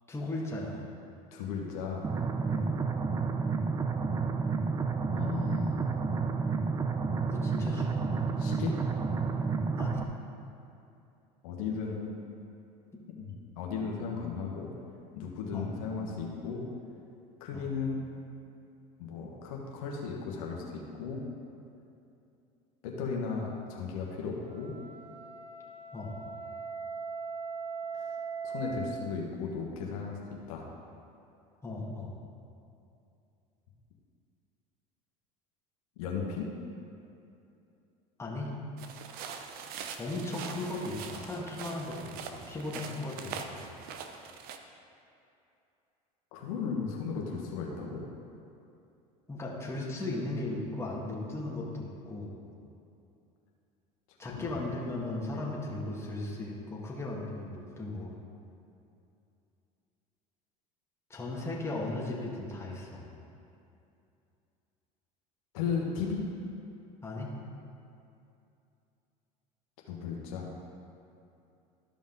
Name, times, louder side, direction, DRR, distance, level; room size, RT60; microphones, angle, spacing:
voice 1, 0.1-0.8 2.5-2.8 7.3-8.1 9.8-10.1 12.9-13.0 15.5-15.7 17.5-17.7 25.9-26.2 31.6-32.2 38.2-38.6 40.0-43.6 49.3-52.4 54.2-58.1 61.1-63.1 67.0-67.3, left 2 dB, 15° left, -4 dB, 1.8 m, -37 dB
voice 2, 1.3-2.1 5.1-5.8 8.4-8.7 11.4-12.2 13.2-14.7 15.1-16.7 17.4-18.1 19.0-21.2 22.8-24.8 27.9-28.0 28.4-30.2 30.5-30.7 36.0-36.5 46.3-48.0 54.3-54.6 65.5-66.2 69.9-70.5, left 5 dB, 80° left, -1 dB, 1.3 m, -35 dB
sound 1, 2.0-10.0, right 4 dB, 20° right, 0.5 m, -30 dB
Wind instrument woodwind instrument, 24.4-29.0, right 5 dB, 40° right, 1.2 m, -40 dB
sound 2, 38.8-44.6, right 6 dB, 55° right, 0.7 m, -43 dB
13.0 x 5.3 x 3.9 m, 2.7 s
supercardioid pair, 95°, 18 cm